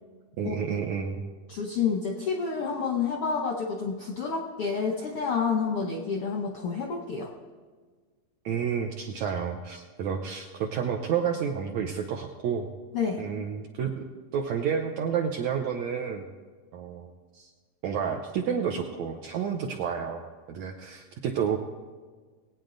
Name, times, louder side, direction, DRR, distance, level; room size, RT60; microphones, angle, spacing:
voice 1, 0.4-1.2 8.5-12.7 13.2-16.3 16.7-17.5 17.8-20.2 20.5-21.6, right 7 dB, 75° right, 2 dB, 1.6 m, -30 dB
voice 2, 1.5-7.3 12.9-13.2, left 5 dB, 70° left, 1 dB, 1.3 m, -29 dB
20.0 x 9.1 x 3.9 m, 1.5 s
omnidirectional pair, 4.0 m